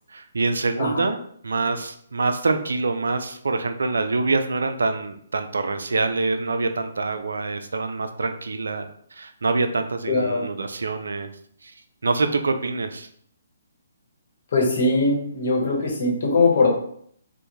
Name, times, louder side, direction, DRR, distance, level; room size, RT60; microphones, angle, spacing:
voice 1, 0.1-1.2 1.4-11.3 11.6-11.7 12.0-13.1, right 3 dB, 70° right, 8 dB, 0.3 m, -25 dB
voice 2, 10.1-10.4 14.5-16.7, left 3 dB, 55° left, -2 dB, 1.0 m, -21 dB
3.4 x 2.1 x 2.8 m, 0.65 s
figure-of-eight pair, 135°, 0 cm